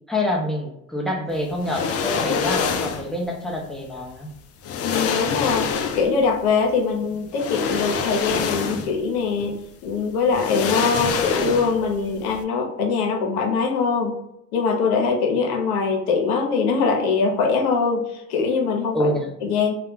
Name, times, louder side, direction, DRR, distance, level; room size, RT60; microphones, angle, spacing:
voice 1, 0.1-4.3 18.9-19.3, left 1 dB, ahead, -1 dB, 0.7 m, -26 dB
sound 1, 1.6-3.1 4.2-4.3 4.6-6.2 7.3-9.0 9.4-9.5 10.3-11.9 12.2-12.4, left 6 dB, 35° left, 0.4 m, -25 dB
voice 2, 4.8-9.6 9.8-14.1 14.5-19.1 19.4-19.7, left 5 dB, 80° left, 2 dB, 0.8 m, -22 dB
2.3 x 2.2 x 3.5 m, 0.80 s
hypercardioid pair, 70°, 44 cm